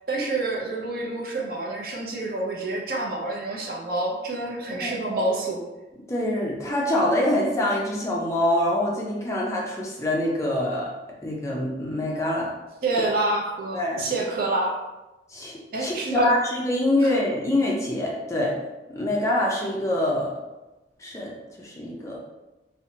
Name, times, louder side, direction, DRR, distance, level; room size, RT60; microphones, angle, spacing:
voice 1, 0.1-5.6 12.8-14.7 15.7-16.3 17.0-17.1, right 2 dB, 55° right, -1 dB, 0.5 m, -27 dB
voice 2, 4.7-5.2 6.1-10.9 11.2-12.5 13.7-14.1 15.3-18.5 18.9-20.3 21.0-21.3 21.6-22.2, left 1 dB, 15° left, -3 dB, 0.4 m, -25 dB
2.8 x 2.1 x 2.7 m, 1.1 s
head